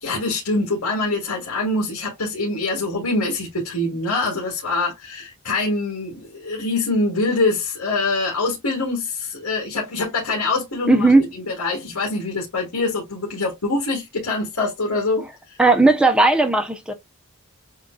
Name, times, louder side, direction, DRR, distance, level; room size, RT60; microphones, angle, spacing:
voice 1, 0.0-15.3, left 2 dB, 85° left, 2.1 m, -24 dB
voice 2, 10.9-11.2 15.6-16.9, right 3 dB, 5° right, 0.9 m, -15 dB
7.5 x 2.6 x 2.4 m
head